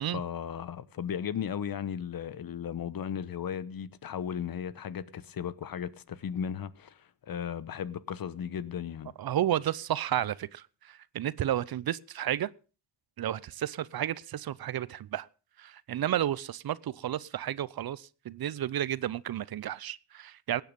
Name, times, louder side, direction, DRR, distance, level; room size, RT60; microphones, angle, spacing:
voice 1, 0.0-9.1, left 8 dB, 55° left, 1.0 m, -36 dB
voice 2, 9.2-12.5 13.2-15.3 15.6-20.6, right 11 dB, 60° right, 0.7 m, -32 dB
17.0 x 9.3 x 5.3 m
cardioid pair, 80°, 41 cm